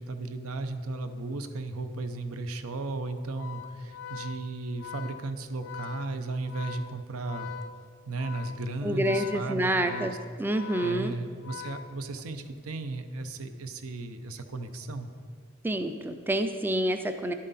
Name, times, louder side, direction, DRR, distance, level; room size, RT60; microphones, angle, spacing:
voice 1, 0.0-7.5 8.1-10.2 10.8-15.1, right 2 dB, 85° right, 8 dB, 0.6 m, -35 dB
Organ, 3.3-12.4, left 8 dB, 70° left, 0.4 m, -43 dB
voice 2, 8.8-10.1 10.4-11.2 15.6-17.3, right 1 dB, 10° right, 8 dB, 0.3 m, -28 dB
11.0 x 7.5 x 4.1 m, 2.1 s
head